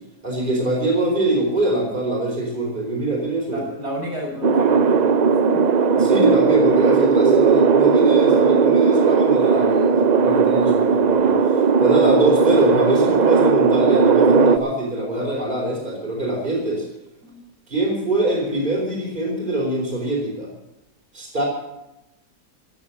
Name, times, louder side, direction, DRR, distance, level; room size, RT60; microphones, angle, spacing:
voice 1, 0.2-3.6 5.9-16.8 17.7-20.5 21.1-21.4, right 2 dB, 30° right, -1 dB, 4.5 m, -22 dB
voice 2, 3.5-5.6 17.2-17.4, equal, 75° right, -2 dB, 6.2 m, -31 dB
sound 1, 4.4-14.6, right 5 dB, 55° right, 0.5 m, -17 dB
15.0 x 10.5 x 7.2 m, 0.88 s
omnidirectional pair, 1.7 m